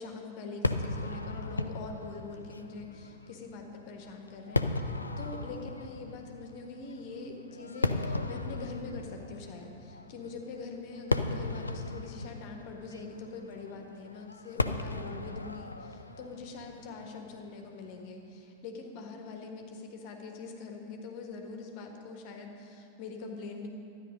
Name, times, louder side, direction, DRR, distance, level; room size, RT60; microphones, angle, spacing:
voice 1, 0.0-4.9 5.2-23.7, left 4 dB, 45° left, 3 dB, 1.5 m, -43 dB
Fireworks, 0.6-18.0, left 2 dB, 80° left, 0.4 m, -36 dB
12.5 x 9.8 x 5.4 m, 2.7 s
figure-of-eight pair, 90°, 0 cm